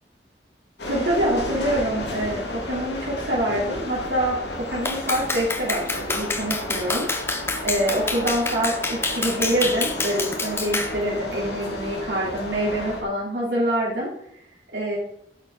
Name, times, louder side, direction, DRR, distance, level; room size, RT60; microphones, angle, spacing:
sound 1, 0.8-13.0, left 1 dB, 75° left, 2.0 m, -33 dB
voice 1, 0.8-7.1 7.6-14.1 14.7-15.0, right 1 dB, 80° right, -6 dB, 3.1 m, -25 dB
Clapping, 4.8-11.0, left 3 dB, 15° left, 0.7 m, -28 dB
10.5 x 7.7 x 3.8 m, 0.73 s
head